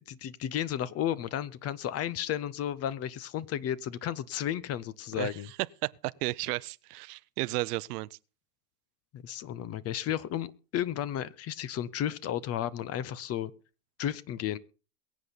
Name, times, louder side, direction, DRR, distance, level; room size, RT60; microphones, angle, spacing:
voice 1, 0.1-5.5 9.1-13.5 14.0-14.6, left 10 dB, 30° left, 0.7 m, -33 dB
voice 2, 5.8-8.1, right 21 dB, 65° right, 0.7 m, -33 dB
22.5 x 8.3 x 4.0 m
supercardioid pair, 120°, 49 cm